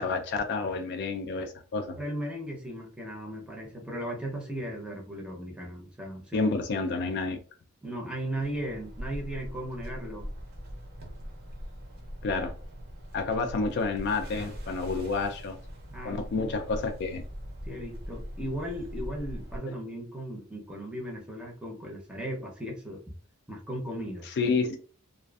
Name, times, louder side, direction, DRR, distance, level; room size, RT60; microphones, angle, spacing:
voice 1, 0.0-2.0 6.3-7.4 12.2-12.5 13.1-15.6 16.0-17.2 24.2-24.8, left 4 dB, 50° left, 0.3 m, -29 dB
voice 2, 2.0-6.4 7.8-10.3 15.9-16.4 17.6-23.0 23.5-24.3, right 1 dB, 5° right, 0.6 m, -37 dB
sound 1, 8.4-19.6, equal, 45° right, 0.6 m, -41 dB
2.4 x 2.4 x 2.3 m
head